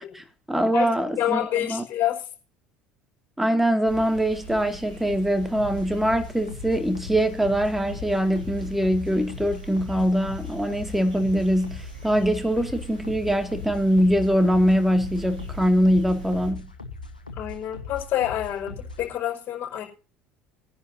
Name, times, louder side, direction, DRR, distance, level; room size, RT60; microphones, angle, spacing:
voice 1, 0.1-1.8 3.4-16.7, equal, 5° right, 2.3 m, -23 dB
voice 2, 0.7-2.3 17.4-19.8, left 12 dB, 45° left, 5.2 m, -28 dB
sound 1, 3.8-16.5, equal, 85° right, 3.9 m, -41 dB
sound 2, 5.5-19.1, left 3 dB, 90° left, 1.2 m, -40 dB
22.0 x 10.5 x 2.8 m
figure-of-eight pair, 65°, 4 cm